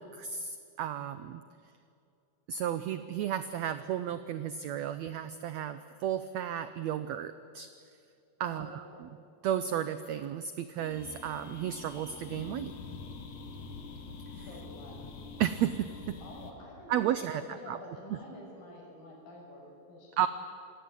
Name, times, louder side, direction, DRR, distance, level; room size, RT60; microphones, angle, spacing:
voice 1, 0.0-1.4 2.5-7.7 8.4-8.8 9.4-12.7 14.3-14.4 15.4-16.2 16.9-17.8 20.2-20.3, right 10 dB, 85° right, 12 dB, 1.5 m, -33 dB
voice 2, 8.4-9.1 14.5-15.0 16.2-20.3, left 1 dB, 85° left, -1 dB, 7.8 m, -49 dB
sound 1, 10.8-16.5, left 4 dB, 60° left, 3.2 m, -45 dB
26.5 x 19.5 x 8.7 m, 2.5 s
omnidirectional pair, 4.0 m